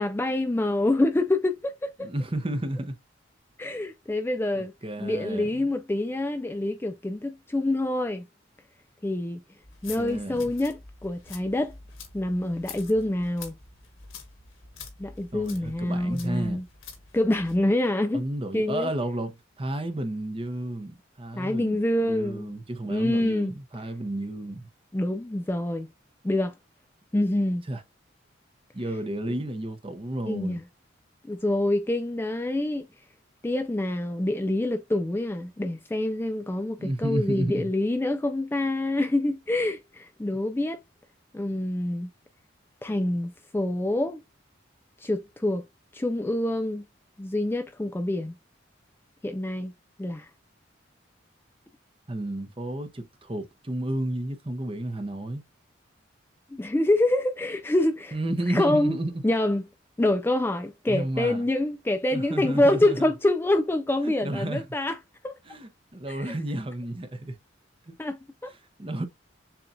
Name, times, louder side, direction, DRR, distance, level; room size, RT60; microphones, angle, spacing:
voice 1, 0.0-2.1 3.6-4.7 5.0-8.3 9.0-9.4 9.8-11.7 12.1-13.6 15.0-16.6 17.1-18.2 18.5-18.9 21.3-22.6 22.9-23.5 24.9-25.9 26.2-26.5 27.1-27.6 30.3-30.6 31.3-32.9 33.4-40.8 41.3-42.1 42.8-44.2 45.0-45.7 45.9-46.9 47.2-48.3 49.2-49.7 50.0-50.3 56.5-58.2 58.5-59.0 59.2-59.6 60.0-65.0 65.2-65.4 66.2-66.3 68.0-68.2 68.4-68.5, left 1 dB, 10° left, 0.3 m, -26 dB
voice 2, 2.0-3.0 4.5-5.7 10.0-10.5 15.3-16.6 18.1-24.7 27.7-27.8 28.7-30.6 36.8-37.7 52.1-55.4 58.1-59.2 60.9-61.4 62.1-63.0 64.0-64.6 65.5-67.4 67.9-68.0 68.4-69.0, right 1 dB, 25° right, 0.7 m, -32 dB
sound 1, 9.6-17.6, left 5 dB, 85° left, 1.5 m, -46 dB
6.9 x 2.4 x 2.6 m
head